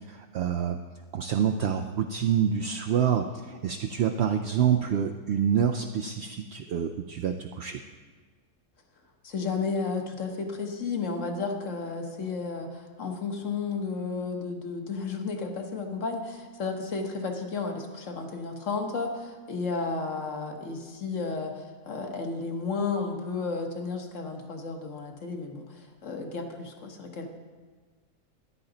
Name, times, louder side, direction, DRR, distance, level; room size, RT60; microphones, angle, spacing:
voice 1, 0.1-0.8 1.1-7.8, right 8 dB, 70° right, 5 dB, 0.6 m, -27 dB
voice 2, 9.2-27.3, left 4 dB, 55° left, 4 dB, 1.4 m, -33 dB
13.5 x 10.0 x 3.9 m, 1.4 s
omnidirectional pair, 1.6 m